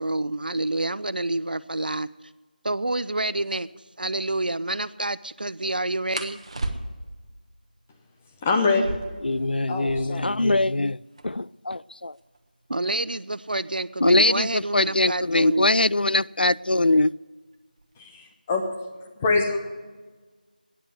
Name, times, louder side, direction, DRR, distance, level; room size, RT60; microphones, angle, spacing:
voice 1, 0.0-2.1 2.6-3.7 4.0-6.4 12.7-15.7, right 2 dB, 70° right, 17 dB, 0.6 m, -28 dB
sound 1, 2.9-3.0 3.4-3.6 6.1-7.2 8.7-10.3 10.6-10.7 10.9-11.5 12.1-14.7 15.7-16.0 16.4-16.9 17.2-17.9, right 2 dB, 40° right, 1.2 m, -36 dB
voice 2, 8.4-9.0 9.7-10.4 18.0-18.7 19.2-19.6, left 3 dB, 10° left, 3 dB, 0.7 m, -24 dB
voice 3, 9.2-11.0 11.2-12.1 14.0-17.1, left 2 dB, 85° left, 20 dB, 0.4 m, -22 dB
13.5 x 10.0 x 8.1 m, 1.4 s
figure-of-eight pair, 170°, 5 cm